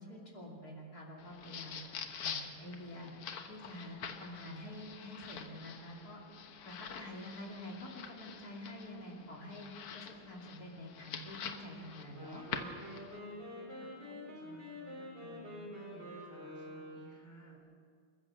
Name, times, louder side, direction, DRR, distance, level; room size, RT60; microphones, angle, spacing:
voice 1, 0.0-1.8 2.2-3.1 3.5-6.2 6.6-9.7 9.9-12.4, left 1 dB, 45° left, 0 dB, 3.2 m, -47 dB
sound 1, 1.2-13.2, left 7 dB, 90° left, 2.2 m, -46 dB
Wind instrument woodwind instrument, 12.1-17.3, equal, 25° right, 5.7 m, -47 dB
voice 2, 13.3-17.7, equal, 5° left, 0 dB, 2.9 m, -57 dB
28.0 x 14.5 x 6.5 m, 2.1 s
omnidirectional pair, 2.4 m